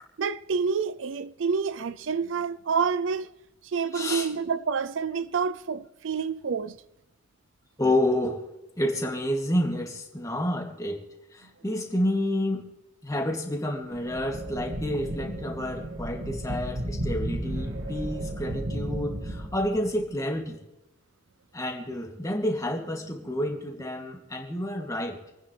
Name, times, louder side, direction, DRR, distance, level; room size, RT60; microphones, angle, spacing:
voice 1, 0.2-3.3 3.7-6.8, right 5 dB, 70° right, 0.5 m, -28 dB
voice 2, 3.9-4.3 7.8-8.4 8.8-11.0 11.3-12.7 13.0-20.5 21.5-25.2, left 1 dB, 15° left, 2.4 m, -29 dB
sound 1, 13.9-20.0, right 1 dB, 90° right, 2.0 m, -34 dB
28.5 x 9.7 x 3.3 m
head